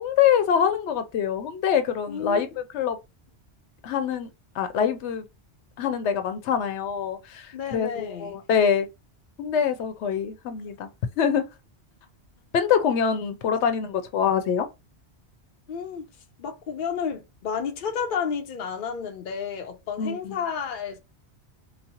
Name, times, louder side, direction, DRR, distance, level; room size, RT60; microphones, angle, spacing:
voice 1, 0.0-3.0 3.8-4.3 4.5-5.2 5.8-8.9 9.4-10.9 11.2-11.5 12.5-14.7 20.0-20.4, left 7 dB, 85° left, 0.9 m, -24 dB
voice 2, 2.1-2.5 7.5-8.3 15.7-16.0 16.4-21.0, left 6 dB, 55° left, 0.8 m, -31 dB
4.0 x 2.0 x 2.8 m
omnidirectional pair, 1.1 m